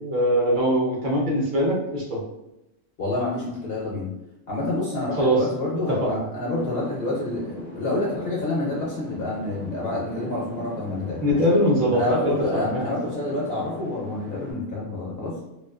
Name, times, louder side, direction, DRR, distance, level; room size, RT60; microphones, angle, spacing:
voice 1, 0.0-2.2 5.2-5.4 5.7-6.2 11.2-12.8, equal, 50° right, -4 dB, 0.6 m, -22 dB
voice 2, 3.0-4.1 4.5-11.4 11.9-15.4, left 2 dB, 60° left, -5 dB, 0.7 m, -28 dB
sound 1, 6.5-14.5, left 2 dB, 15° left, 0.4 m, -39 dB
2.3 x 2.3 x 2.3 m, 0.91 s
omnidirectional pair, 1.3 m